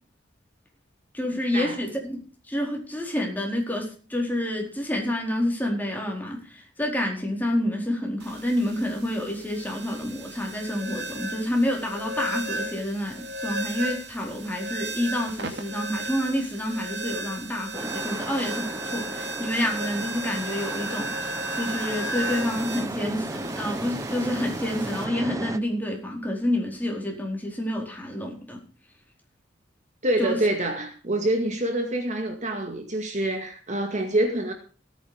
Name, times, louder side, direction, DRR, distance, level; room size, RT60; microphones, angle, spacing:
voice 1, 1.1-2.2 2.5-28.6 30.2-30.4, left 1 dB, 10° left, 0 dB, 4.6 m, -28 dB
sound 1, 8.2-25.0, right 1 dB, 65° right, 2.7 m, -35 dB
sound 2, 17.7-25.6, right 2 dB, 15° right, 0.8 m, -35 dB
voice 2, 30.0-34.5, right 1 dB, 40° right, 5 dB, 2.1 m, -26 dB
17.0 x 9.4 x 5.2 m, 0.39 s
head